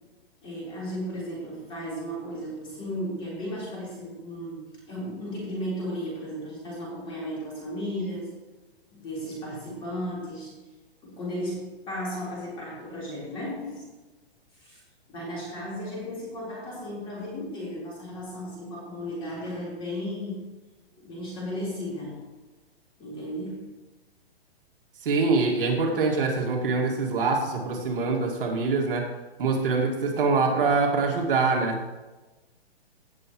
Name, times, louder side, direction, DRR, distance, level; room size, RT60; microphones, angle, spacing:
voice 1, 0.4-8.3 8.9-10.5 11.0-13.9 14.5-14.8 15.1-20.5 21.0-22.3 23.0-23.7, equal, 15° left, -6 dB, 4.0 m, -35 dB
voice 2, 25.0-29.1 29.4-31.8, right 4 dB, 55° right, 0 dB, 2.1 m, -24 dB
17.0 x 7.2 x 3.1 m, 1.1 s
hypercardioid pair, 170°, 32 cm